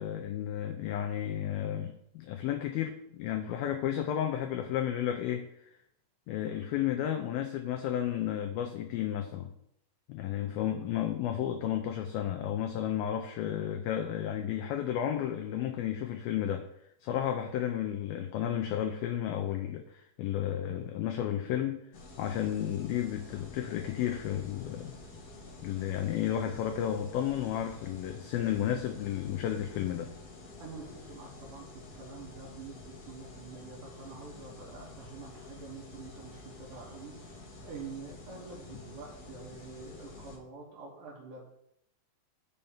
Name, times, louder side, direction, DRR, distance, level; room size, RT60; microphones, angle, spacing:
voice 1, 0.0-5.6 6.3-9.5 10.1-16.7 17.0-21.8 22.2-25.0 25.6-30.1, left 10 dB, 90° left, 5 dB, 2.0 m, -32 dB
sound 1, 21.9-40.4, left 2 dB, 55° left, 1.8 m, -49 dB
voice 2, 30.6-31.7 31.9-32.8 33.1-41.5, right 4 dB, 60° right, -4 dB, 2.5 m, -47 dB
6.7 x 5.4 x 7.2 m, 0.74 s
omnidirectional pair, 5.0 m